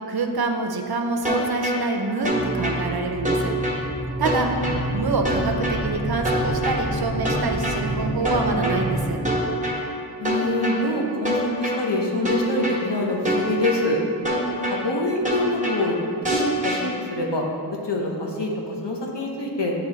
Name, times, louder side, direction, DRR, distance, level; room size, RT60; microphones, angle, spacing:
voice 1, 0.1-3.5 4.2-9.2, right 3 dB, 60° right, 4 dB, 0.6 m, -26 dB
sound 1, 1.2-1.8 2.2-2.8 3.2-3.8 4.2-4.8 5.2-5.8 6.2-6.8 7.2-7.8 8.2-8.8 9.2-9.8 10.2-10.8 11.2-11.8 12.2-12.8 13.2-13.8 14.2-14.8 15.2-15.8 16.2-16.8, right 1 dB, 15° right, 1.2 m, -24 dB
sound 2, 2.3-9.3, right 1 dB, 30° left, 1.0 m, -29 dB
voice 2, 10.2-14.0 14.7-16.0 16.3-19.7, left 1 dB, 75° left, -1 dB, 1.0 m, -25 dB
8.9 x 3.1 x 3.9 m, 2.3 s
wide cardioid pair, 50°, 42 cm